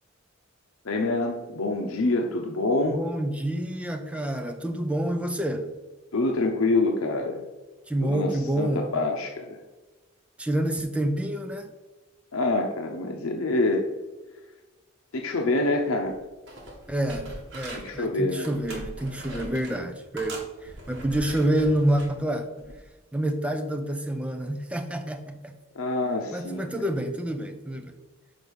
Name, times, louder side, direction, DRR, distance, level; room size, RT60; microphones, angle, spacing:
voice 1, 0.8-3.0 6.1-7.4 8.0-9.6 12.3-13.8 15.1-16.2 17.7-18.5 25.7-26.7, left 2 dB, 85° left, 2 dB, 0.8 m, -26 dB
voice 2, 2.9-5.7 7.9-8.9 10.4-11.7 16.9-22.5 23.1-25.5 26.3-27.9, right 1 dB, 5° right, 5 dB, 0.5 m, -28 dB
sound 1, 16.0-16.2 16.5-18.0 18.4-19.8 20.2-22.1 22.6-22.8, right 1 dB, 60° right, 2.1 m, -41 dB
5.2 x 5.0 x 6.4 m, 1.2 s
head